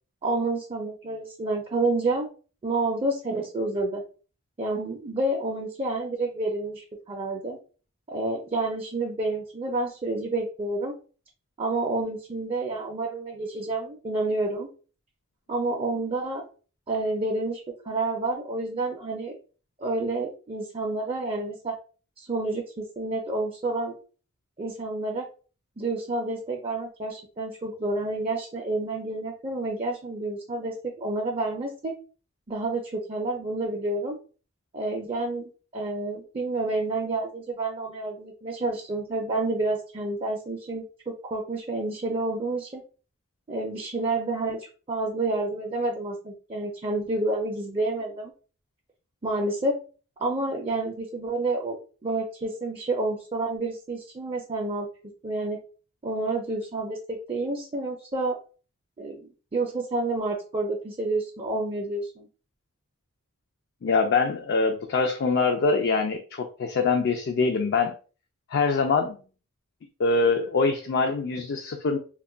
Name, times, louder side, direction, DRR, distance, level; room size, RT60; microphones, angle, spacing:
voice 1, 0.2-2.3 2.6-4.0 4.6-7.6 8.1-10.9 11.6-14.7 15.5-16.4 16.9-19.3 19.8-21.7 22.2-24.0 24.6-25.3 25.8-32.0 32.5-34.2 34.7-42.8 43.5-48.3 49.2-49.8 50.2-54.9 55.2-55.6 56.0-58.4 59.0-62.3, right 2 dB, 25° right, 0 dB, 0.4 m, -29 dB
voice 2, 63.8-67.9 68.5-69.2 70.0-72.0, left 4 dB, 55° left, 4 dB, 0.4 m, -24 dB
2.2 x 2.1 x 3.7 m, 0.37 s
head